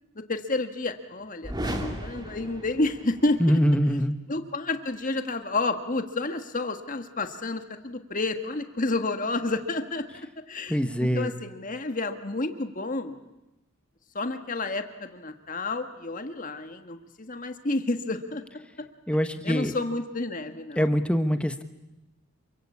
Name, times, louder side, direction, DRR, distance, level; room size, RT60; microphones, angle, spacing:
voice 1, 0.3-3.6 4.3-13.1 14.1-18.4 19.4-20.8, left 2 dB, 40° left, 7 dB, 1.6 m, -30 dB
sound 1, 1.4-3.4, right 1 dB, 20° right, 2.6 m, -35 dB
voice 2, 3.4-4.2 10.7-11.3 19.1-19.7 20.7-21.6, equal, 5° left, 8 dB, 1.3 m, -23 dB
27.5 x 24.0 x 8.6 m, 0.96 s
head